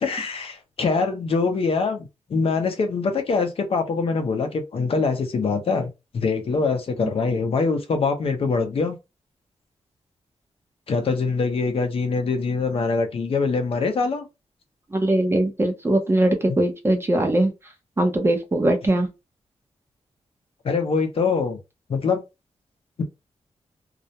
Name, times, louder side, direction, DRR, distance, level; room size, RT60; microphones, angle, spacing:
voice 1, 0.0-9.0 10.9-14.3 20.6-21.6 21.9-22.2 23.0-23.1, left 4 dB, 55° left, 0.6 m, -24 dB
voice 2, 14.9-17.5 18.0-19.1, right 1 dB, 20° right, 0.6 m, -21 dB
2.4 x 2.0 x 2.7 m
wide cardioid pair, 135°, 12 cm